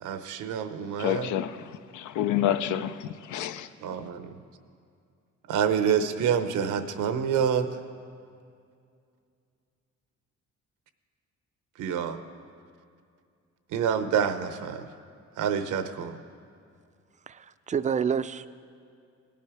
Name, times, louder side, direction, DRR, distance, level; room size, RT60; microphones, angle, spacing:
voice 1, 0.0-1.3 3.8-4.3 5.5-7.7 11.8-12.2 13.7-14.8 15.4-16.2, right 7 dB, 85° right, 0.8 m, -27 dB
voice 2, 1.0-3.7, left 10 dB, 75° left, 0.6 m, -29 dB
voice 3, 17.3-18.5, right 7 dB, 25° right, 0.4 m, -28 dB
17.5 x 9.3 x 4.8 m
cardioid pair, 90°, 30 cm